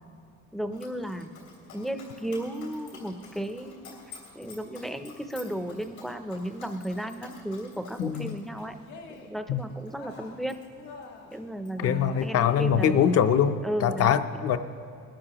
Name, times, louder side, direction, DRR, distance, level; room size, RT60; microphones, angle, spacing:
voice 1, 0.5-1.3 1.7-4.0 4.3-8.8 9.3-10.6 11.3-13.0 13.6-14.2, equal, ahead, 7 dB, 0.4 m, -34 dB
Dog, 0.7-11.8 12.1-13.2, left 5 dB, 85° left, 3.2 m, -51 dB
voice 2, 8.0-8.4 9.5-9.6 11.8-14.6, left 8 dB, 55° left, 10 dB, 0.5 m, -23 dB
Cheering, 8.8-9.4 9.8-10.5 10.7-11.4 11.8-13.5, left 4 dB, 70° left, 1.5 m, -46 dB
20.5 x 12.5 x 2.9 m, 2.4 s
cardioid pair, 160°, 29 cm